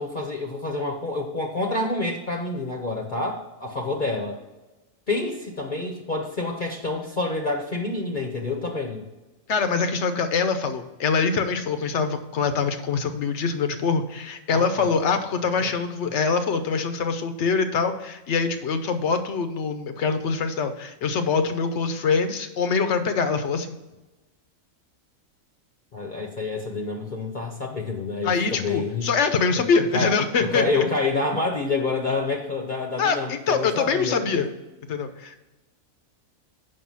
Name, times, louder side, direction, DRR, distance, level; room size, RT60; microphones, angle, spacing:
voice 1, 0.0-4.4 5.1-9.1 14.5-14.9 15.6-15.7 25.9-29.1 29.9-30.1 30.4-34.5, left 3 dB, 40° left, 1 dB, 0.9 m, -28 dB
voice 2, 9.5-23.8 28.2-30.9 33.0-34.5 34.9-35.4, left 5 dB, 60° left, 9 dB, 1.0 m, -24 dB
7.6 x 5.5 x 5.6 m, 1.1 s
omnidirectional pair, 1.4 m